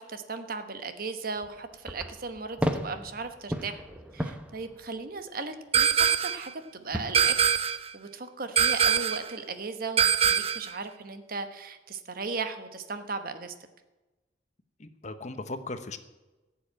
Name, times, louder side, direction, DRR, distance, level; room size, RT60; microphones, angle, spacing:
voice 1, 0.0-3.8 4.1-5.9 6.2-7.4 7.9-13.5, right 4 dB, 55° right, 8 dB, 1.1 m, -37 dB
sound 1, 1.4-5.4 6.9-7.6, equal, 5° right, 0.9 m, -35 dB
sound 2, 5.7-6.5 7.1-7.9 8.6-9.3 10.0-10.7, right 8 dB, 35° right, 0.5 m, -23 dB
voice 2, 14.8-16.0, left 2 dB, 40° left, 10 dB, 0.9 m, -37 dB
16.0 x 7.2 x 8.7 m, 1.1 s
head